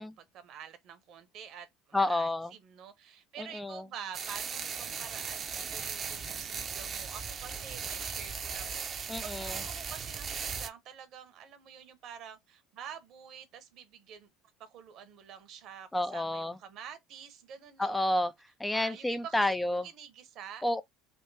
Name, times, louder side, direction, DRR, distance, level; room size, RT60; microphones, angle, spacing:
voice 1, 0.0-14.3 14.6-18.3 18.7-19.4 19.8-20.6, right 8 dB, 55° right, 1.0 m, -48 dB
voice 2, 1.9-2.5 3.4-3.8 9.1-9.6 15.9-16.6 17.8-18.3 18.6-19.9 20.6-20.8, left 1 dB, 10° left, 0.4 m, -30 dB
sound 1, 4.1-10.7, right 6 dB, 35° right, 0.7 m, -37 dB
3.6 x 2.6 x 3.9 m
hypercardioid pair, 70°, 0 cm